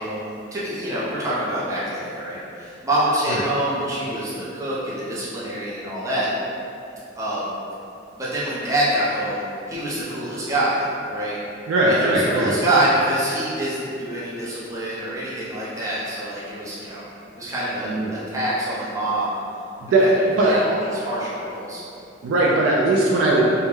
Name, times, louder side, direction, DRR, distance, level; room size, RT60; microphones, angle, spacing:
voice 1, 0.0-6.3 7.2-7.5 8.1-9.4 9.7-11.4 11.9-17.0 17.4-19.4 20.0-20.1 20.4-21.8, right 1 dB, 15° right, -9 dB, 0.4 m, -25 dB
voice 2, 11.7-12.6 17.8-18.3 19.8-20.6 22.2-23.5, right 2 dB, 90° right, -4 dB, 0.3 m, -19 dB
2.3 x 2.1 x 3.0 m, 2.6 s
head